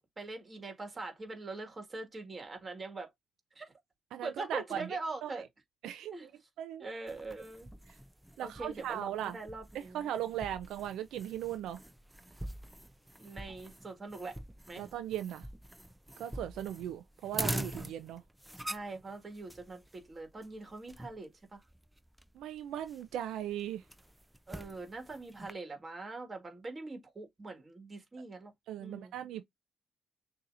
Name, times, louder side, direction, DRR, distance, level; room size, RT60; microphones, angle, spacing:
voice 1, 0.0-3.1 3.6-3.7 4.2-5.5 6.1-6.3 6.8-7.7 8.4-10.1 13.2-14.4 14.7-14.9 18.7-21.6 24.5-28.5 28.8-29.1, right 3 dB, 30° right, 1.8 m, -43 dB
voice 2, 4.1-4.9 5.2-5.3 5.8-6.3 6.6-6.9 8.4-9.4 9.7-11.8 14.8-15.5 16.2-18.2 22.4-23.8 28.7-29.4, right 11 dB, 85° right, 0.5 m, -38 dB
sound 1, 7.1-25.5, right 1 dB, 5° right, 0.5 m, -45 dB
6.6 x 2.9 x 2.5 m
cardioid pair, 90°, 0 cm